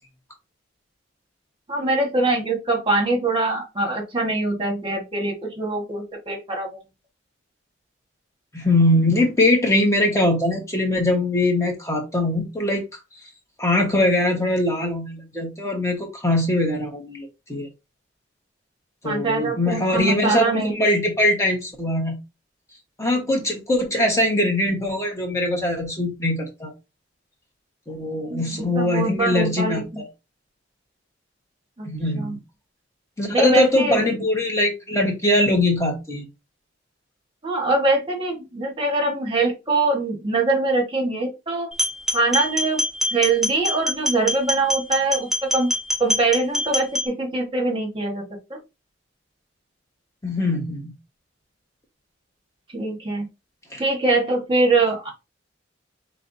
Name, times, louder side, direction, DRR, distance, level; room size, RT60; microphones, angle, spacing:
voice 1, 1.7-6.7 19.0-20.9 28.3-29.8 31.8-31.9 32.2-32.4 33.3-34.1 37.4-41.7 42.1-42.8 43.1-45.7 46.0-48.2 48.5-48.6 52.7-53.2 53.8-55.1, right 2 dB, 30° right, 1.5 m, -23 dB
voice 2, 8.5-12.8 13.6-17.7 19.0-22.2 23.0-26.7 27.9-30.1 31.9-32.4 33.2-36.2 50.2-50.9 53.7-53.8, left 1 dB, 15° left, 1.4 m, -22 dB
sound 1, 41.7-47.1, left 1 dB, ahead, 1.3 m, -25 dB
5.6 x 3.3 x 2.7 m
head